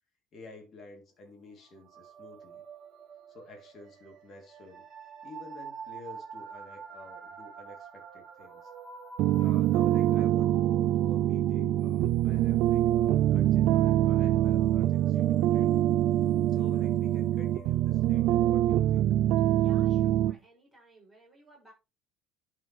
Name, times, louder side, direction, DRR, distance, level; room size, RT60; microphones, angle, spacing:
voice 1, 0.3-2.6 3.3-4.8 5.2-8.7 9.3-15.9 16.5-19.1, left 2 dB, 30° left, 2.8 m, -50 dB
sound 1, 1.7-18.5, right 7 dB, 35° right, 2.7 m, -45 dB
sound 2, 9.2-20.3, right 12 dB, 55° right, 0.3 m, -24 dB
voice 2, 19.5-21.7, right 1 dB, ahead, 5.9 m, -57 dB
11.0 x 5.3 x 3.2 m
cardioid pair, 175°, 0 cm